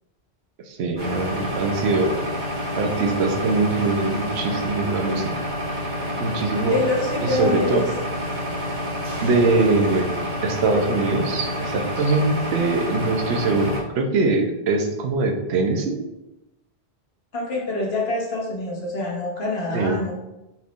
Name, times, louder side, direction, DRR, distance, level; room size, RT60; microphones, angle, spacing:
voice 1, 0.7-2.2 2.8-5.3 6.2-6.8 7.2-7.9 9.2-10.0 10.4-16.0 19.7-20.0, right 3 dB, 85° right, 3 dB, 0.9 m, -22 dB
sound 1, 1.0-13.8, equal, 50° right, 1.3 m, -28 dB
voice 2, 6.7-7.9 12.0-12.1 17.3-20.1, left 2 dB, 75° left, -2 dB, 1.2 m, -25 dB
4.2 x 3.4 x 2.4 m, 0.95 s
omnidirectional pair, 1.1 m